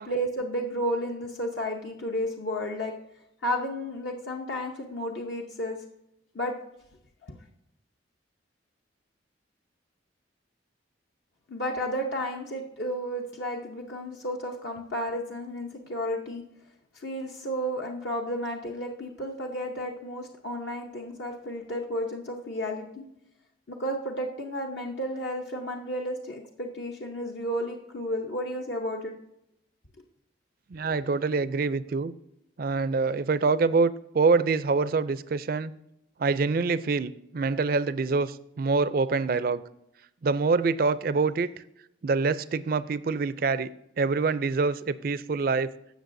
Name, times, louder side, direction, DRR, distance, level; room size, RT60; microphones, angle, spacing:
voice 1, 0.0-2.9 3.4-5.8 6.3-6.5 7.2-7.3 11.5-16.4 16.9-23.1 23.7-29.1, equal, 65° left, 1 dB, 0.9 m, -32 dB
voice 2, 30.7-32.1 32.6-35.7 36.2-39.6 40.2-41.5 42.0-43.7 44.0-45.7, right 4 dB, 50° right, 15 dB, 0.4 m, -25 dB
16.5 x 6.3 x 2.6 m, 0.81 s
head